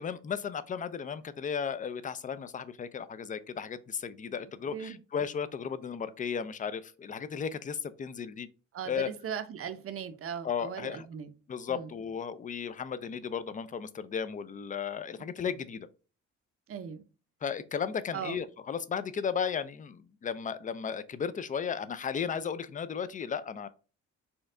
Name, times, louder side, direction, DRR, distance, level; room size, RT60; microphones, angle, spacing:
voice 1, 0.0-8.5 8.8-9.1 10.4-11.1 11.5-15.9 17.4-23.7, left 7 dB, 25° left, 0.4 m, -35 dB
voice 2, 8.7-11.3 11.7-11.9 16.7-17.0 18.1-18.4, right 7 dB, 50° right, 0.7 m, -38 dB
4.3 x 2.3 x 3.7 m
cardioid pair, 90°, 30 cm